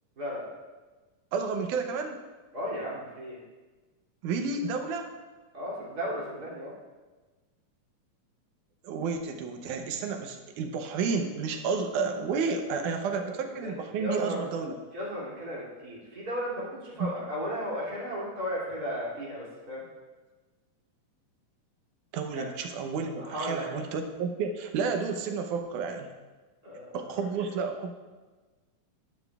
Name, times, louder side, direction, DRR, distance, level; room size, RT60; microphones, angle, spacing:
voice 1, 0.2-0.5 2.5-3.4 5.5-6.7 13.2-14.5 14.9-19.8 22.3-22.4 23.2-23.8 26.6-27.2, equal, 30° right, -6 dB, 3.0 m, -35 dB
voice 2, 1.3-2.2 4.2-5.1 8.8-14.8 22.1-26.1 26.9-27.9, right 5 dB, 80° right, 5 dB, 2.3 m, -31 dB
12.0 x 11.0 x 2.4 m, 1.3 s
omnidirectional pair, 3.8 m